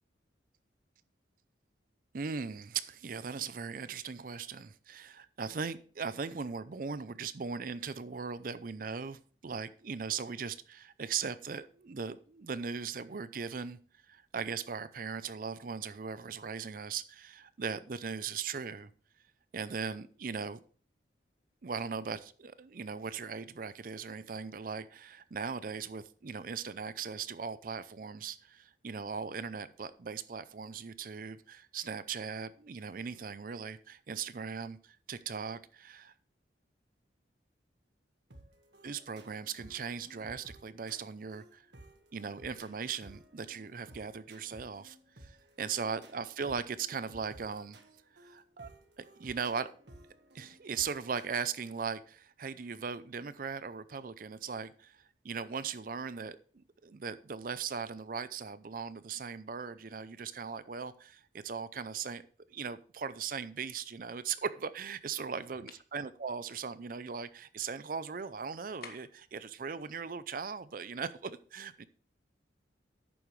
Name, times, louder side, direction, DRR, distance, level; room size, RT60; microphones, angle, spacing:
voice 1, 2.1-13.8 14.1-18.9 19.5-20.6 21.6-36.1 38.8-41.6 42.1-45.0 45.2-47.8 48.2-48.7 49.0-49.7 50.3-56.4 56.8-62.2 62.5-71.8, right 6 dB, 50° right, 0.5 m, -39 dB
sound 1, 38.3-51.3, right 1 dB, 70° right, 1.6 m, -56 dB
sound 2, 65.7-65.9 68.8-69.3, left 5 dB, 55° left, 1.4 m, -49 dB
11.0 x 8.7 x 3.2 m
head